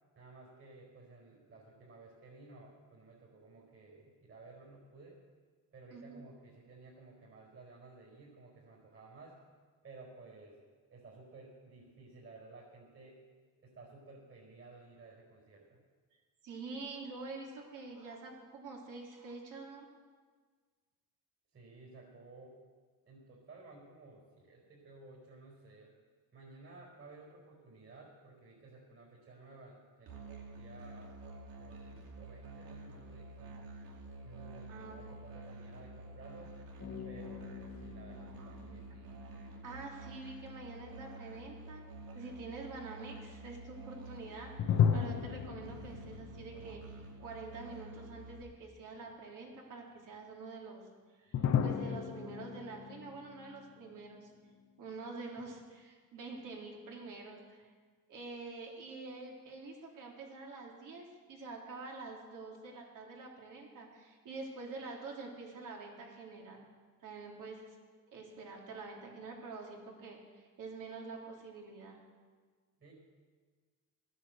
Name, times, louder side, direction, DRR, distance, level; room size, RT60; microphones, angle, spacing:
voice 1, 0.1-5.2 5.7-9.4 9.8-10.6 10.9-13.2 13.6-15.8 21.5-22.6 23.1-25.9 26.3-31.2 31.5-33.7 34.2-36.6 37.0-39.3 72.8-72.9, right 3 dB, 40° right, -4 dB, 4.8 m, -55 dB
voice 2, 5.9-6.2 16.4-19.9 34.7-35.2 39.6-41.8 42.1-50.8 51.2-54.3 54.8-57.7 58.1-66.6 67.0-67.8 68.1-72.0, right 3 dB, 65° right, 0 dB, 3.4 m, -47 dB
Musical instrument, 30.1-48.4, right 2 dB, 80° right, 2.3 m, -49 dB
sound 1, 36.8-40.1 44.6-47.6 47.9-48.0 51.3-54.6, left 8 dB, 50° left, 1.0 m, -36 dB
14.5 x 9.8 x 7.9 m, 1.5 s
cardioid pair, 110°, 34 cm